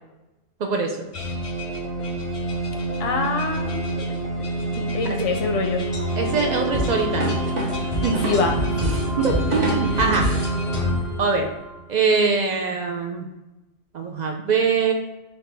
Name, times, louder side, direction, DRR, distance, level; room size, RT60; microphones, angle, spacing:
voice 1, 0.6-1.1 4.8-4.9 6.2-7.4 8.0-8.2 9.2-10.3 11.2-11.5 11.9-13.3 13.9-14.9, right 4 dB, 65° right, 3 dB, 0.4 m, -22 dB
sound 1, 1.1-11.8, right 1 dB, 40° left, 0.5 m, -27 dB
voice 2, 3.0-3.9 4.9-5.9 8.2-9.2 9.9-10.1, left 4 dB, 85° left, 4 dB, 0.9 m, -26 dB
sound 2, 6.7-10.5, equal, 40° right, 0.8 m, -26 dB
4.1 x 2.8 x 3.3 m, 1.0 s
omnidirectional pair, 1.2 m